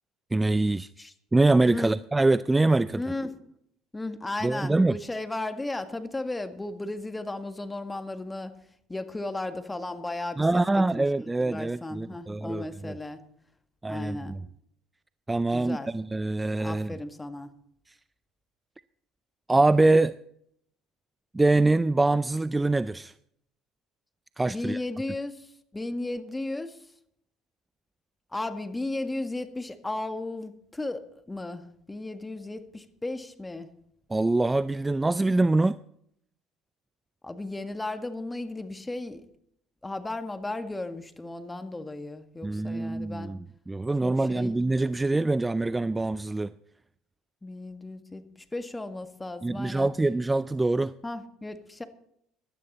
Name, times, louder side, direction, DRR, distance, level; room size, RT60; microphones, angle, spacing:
voice 1, 0.3-0.9 1.3-3.0 4.4-5.0 10.4-13.0 13.8-14.4 15.3-16.9 19.5-20.1 21.3-23.1 24.4-24.8 34.1-35.8 42.4-46.5 49.4-50.9, right 2 dB, 15° right, 16 dB, 0.4 m, -24 dB
voice 2, 2.9-3.4 3.9-8.5 8.9-10.6 10.9-11.1 11.4-13.2 13.9-14.4 15.5-15.9 16.6-17.5 24.5-25.5 25.7-26.8 28.3-33.7 37.2-39.2 39.8-43.4 44.0-44.5 47.4-49.9 51.0-51.8, left 2 dB, 15° left, 8 dB, 1.8 m, -35 dB
17.0 x 12.0 x 4.2 m, 0.70 s
hypercardioid pair, 70°, 0 cm